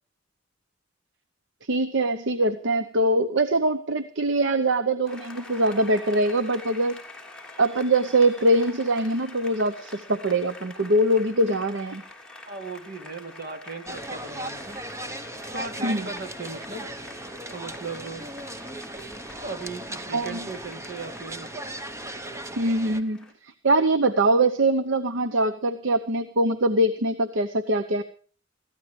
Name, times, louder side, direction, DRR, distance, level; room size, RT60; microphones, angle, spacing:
voice 1, 1.6-7.0 7.6-12.0 15.8-16.1 20.1-20.5 22.6-28.0, right 1 dB, 70° right, 11 dB, 0.9 m, -23 dB
Applause, 5.1-23.3, left 2 dB, 5° left, 2.9 m, -46 dB
voice 2, 12.4-14.8 15.5-16.9 17.5-18.3 19.4-21.5, right 3 dB, 55° right, 5 dB, 2.7 m, -37 dB
sound 1, 13.9-23.0, right 1 dB, 15° right, 0.9 m, -37 dB
21.5 x 15.0 x 3.3 m, 0.42 s
head